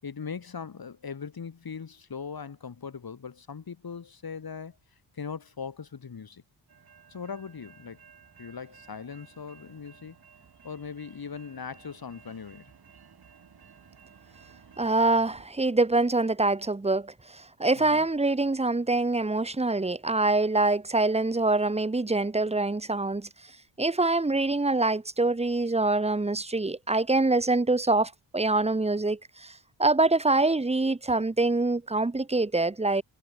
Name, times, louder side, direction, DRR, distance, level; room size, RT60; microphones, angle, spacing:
voice 1, 0.0-4.8 5.1-6.4 7.1-8.0 8.4-10.2 10.6-12.7 17.8-18.1, left 6 dB, 50° left, 6.6 m, -40 dB
sound 1, 6.7-15.5, right 7 dB, 50° right, 3.4 m, -55 dB
voice 2, 14.8-23.3 23.8-33.0, right 2 dB, 15° right, 1.1 m, -25 dB
cardioid pair, 75°, 48 cm